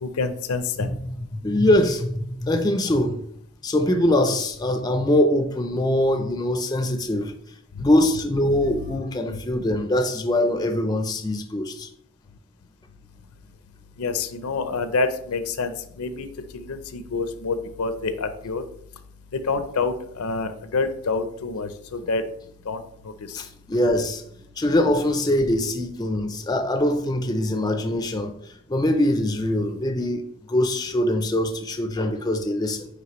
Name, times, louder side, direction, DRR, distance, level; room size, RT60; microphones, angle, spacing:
voice 1, 0.0-0.9 7.7-7.8 8.5-9.0 14.0-16.3 16.5-18.6 19.3-22.2 22.7-23.4, left 4 dB, 80° left, 0.6 m, -28 dB
voice 2, 0.8-3.2 3.6-7.3 7.8-11.9 23.3-24.2 24.6-32.9, left 1 dB, 20° left, 0.4 m, -23 dB
9.2 x 3.3 x 3.0 m
head